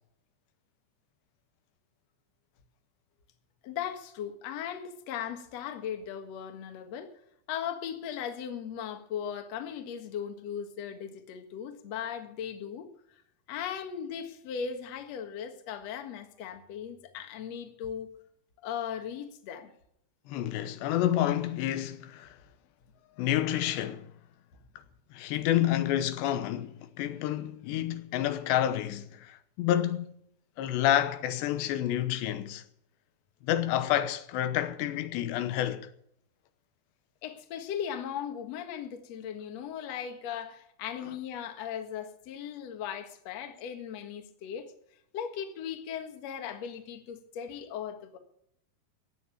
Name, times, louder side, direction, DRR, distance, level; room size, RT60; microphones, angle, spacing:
voice 1, 3.6-7.1 7.5-12.9 13.5-18.1 18.6-19.7 37.2-44.7 45.1-48.2, left 8 dB, 55° left, 2.1 m, -38 dB
voice 2, 20.3-22.4 23.2-24.1 25.1-30.1 30.6-32.6 33.4-35.9, left 12 dB, 90° left, 3.2 m, -29 dB
15.5 x 9.8 x 7.2 m
omnidirectional pair, 4.9 m